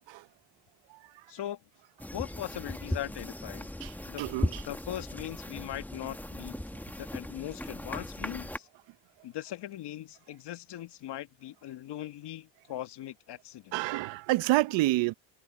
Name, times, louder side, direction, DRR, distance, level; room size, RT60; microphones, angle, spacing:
voice 1, 1.3-1.6 2.1-3.7 4.1-4.3 4.6-6.6 7.0-8.7 9.2-13.8, left 13 dB, 60° left, 1.4 m, -40 dB
sound 1, 2.0-8.6, left 1 dB, 5° left, 1.4 m, -37 dB
voice 2, 4.2-4.6 13.7-15.1, right 18 dB, 70° right, 0.7 m, -27 dB
cardioid pair, 90°, 46 cm